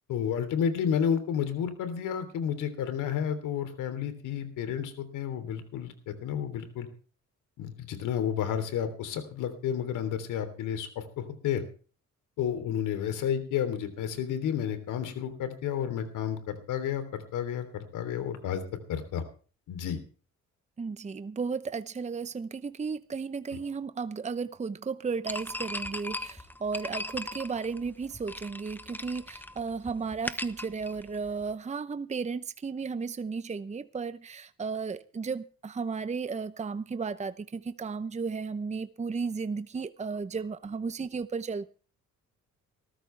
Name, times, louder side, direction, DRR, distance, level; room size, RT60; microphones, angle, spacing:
voice 1, 0.1-6.9 7.6-11.6 12.4-18.6 18.9-19.2 19.7-20.0, left 8 dB, 90° left, 9 dB, 3.5 m, -31 dB
voice 2, 20.8-41.7, right 5 dB, 25° right, 13 dB, 0.8 m, -34 dB
sound 1, 25.3-31.5, left 1 dB, 5° left, 1.1 m, -39 dB
19.5 x 14.0 x 3.4 m, 0.39 s
cardioid pair, 90°, 30 cm